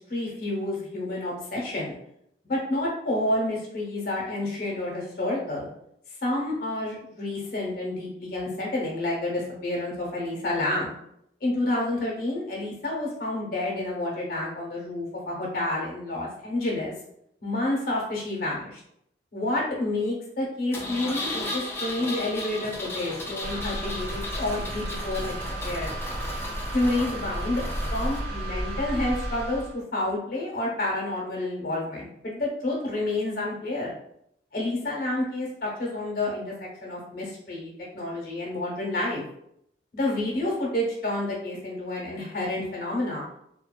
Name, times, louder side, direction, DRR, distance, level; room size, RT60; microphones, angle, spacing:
voice 1, 0.1-2.0 2.4-5.7 6.2-10.9 11.4-16.9 17.4-18.8 19.3-25.3 25.6-26.0 26.7-27.6 27.9-33.9 34.5-39.2 39.9-43.2, left 1 dB, 55° left, -3 dB, 0.8 m, -29 dB
Engine, 20.7-28.2, left 2 dB, 15° left, 0.3 m, -35 dB
sound 1, 23.4-29.7, right 1 dB, 35° right, 1.1 m, -33 dB
2.6 x 2.1 x 2.2 m, 0.74 s
head